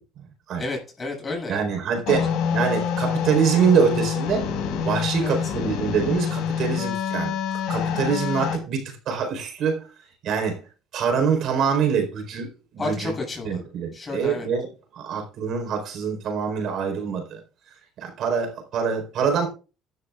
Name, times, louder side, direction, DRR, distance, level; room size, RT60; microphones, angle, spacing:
voice 1, 0.6-1.6 2.1-2.2 5.2-5.5 12.8-13.6 13.9-14.5, left 3 dB, 25° left, 7.6 m, -31 dB
voice 2, 1.5-4.5 4.9-7.3 7.7-9.8 10.2-10.6 10.9-12.5 12.7-13.1 13.4-14.7 15.0-17.4 18.0-19.5, right 6 dB, 55° right, 4.4 m, -24 dB
sound 1, 2.1-8.6, left 7 dB, 75° left, 4.9 m, -26 dB
15.5 x 12.5 x 2.5 m
cardioid pair, 130°, 0 cm